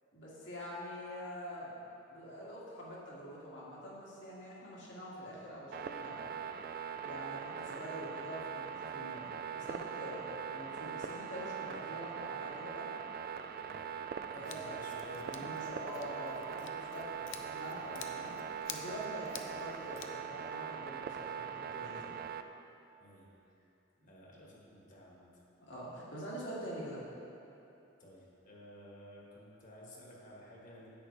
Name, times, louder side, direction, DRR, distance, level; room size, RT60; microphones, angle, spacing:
voice 1, 0.1-1.7 2.1-6.3 7.0-12.9 14.3-14.8 15.2-18.4 18.7-22.2 25.6-27.0, equal, 70° left, -6 dB, 2.1 m, -45 dB
sound 1, 5.7-22.4, right 7 dB, 50° right, 0.3 m, -42 dB
voice 2, 14.3-15.5 23.0-23.3 24.0-25.4 28.0-30.9, left 1 dB, 45° left, -4 dB, 1.7 m, -53 dB
Scissors, 14.4-20.1, left 8 dB, 85° left, 0.6 m, -50 dB
10.0 x 8.4 x 3.3 m, 2.9 s
head